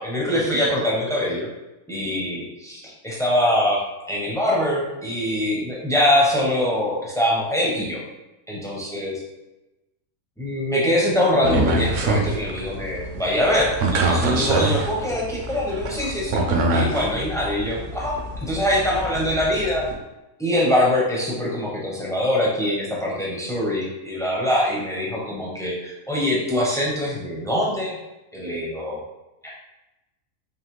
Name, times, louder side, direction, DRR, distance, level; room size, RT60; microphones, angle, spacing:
voice 1, 0.0-1.5 1.9-3.8 4.1-8.0 8.5-9.1 10.4-16.4 16.7-19.9 20.4-28.0 28.3-29.0 29.4-29.5, left 1 dB, 5° left, -4 dB, 0.4 m, -23 dB
sound 1, 11.4-19.9, right 2 dB, 65° right, 0.9 m, -25 dB
3.9 x 3.1 x 3.1 m, 1.0 s
omnidirectional pair, 1.5 m